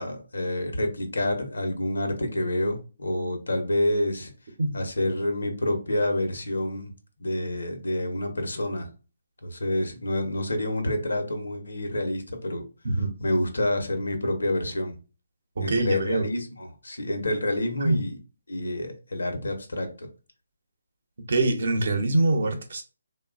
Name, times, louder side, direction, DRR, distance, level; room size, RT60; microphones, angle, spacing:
voice 1, 0.0-4.3 4.7-6.9 7.2-8.9 9.4-12.6 13.0-14.9 15.6-18.2 18.5-20.1, left 1 dB, 85° left, 0.8 m, -28 dB
voice 2, 15.6-16.3 17.8-18.0 21.3-22.8, right 2 dB, 65° right, 0.7 m, -24 dB
3.0 x 2.2 x 2.4 m
hypercardioid pair, 160°, 0 cm